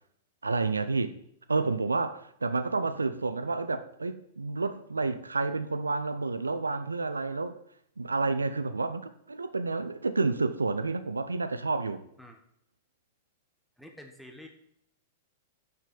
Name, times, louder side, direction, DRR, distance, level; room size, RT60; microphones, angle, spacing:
voice 1, 0.4-1.1 1.5-7.5 8.0-12.0, right 3 dB, 85° right, 0.6 m, -30 dB
voice 2, 13.8-14.5, left 1 dB, ahead, 1.4 m, -48 dB
8.3 x 6.5 x 6.8 m
figure-of-eight pair, 100°, 0 cm